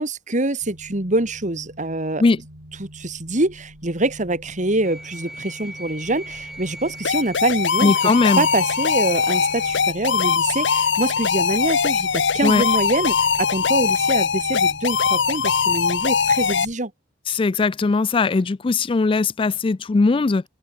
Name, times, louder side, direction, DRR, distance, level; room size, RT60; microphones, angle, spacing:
voice 1, 0.0-2.2 2.8-7.9 8.4-16.9, right 2 dB, 45° right, 2.5 m, -25 dB
sound 1, 0.6-16.7, equal, 75° right, 7.3 m, -43 dB
sound 2, 4.8-9.9, right 1 dB, 5° right, 4.7 m, -38 dB
sound 3, 7.0-16.7, left 6 dB, 75° left, 0.9 m, -21 dB
voice 2, 7.8-8.4 12.4-12.6 17.3-20.4, left 3 dB, 30° left, 0.4 m, -19 dB
head